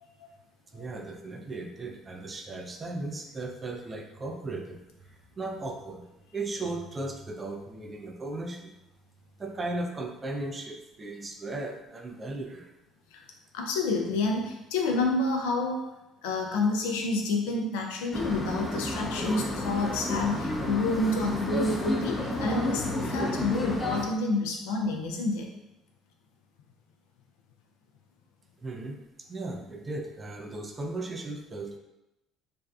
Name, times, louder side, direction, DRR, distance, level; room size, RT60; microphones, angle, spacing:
voice 1, 0.7-6.1 6.3-8.8 9.4-12.7 28.6-29.0 29.3-31.8, right 2 dB, 30° right, 2 dB, 0.4 m, -36 dB
voice 2, 13.5-15.9 16.2-25.5, left 3 dB, 80° left, 1 dB, 0.4 m, -29 dB
sound 1, 18.1-24.1, left 1 dB, 25° left, 0.5 m, -31 dB
2.5 x 2.2 x 2.3 m, 0.94 s
hypercardioid pair, 65°, 0 cm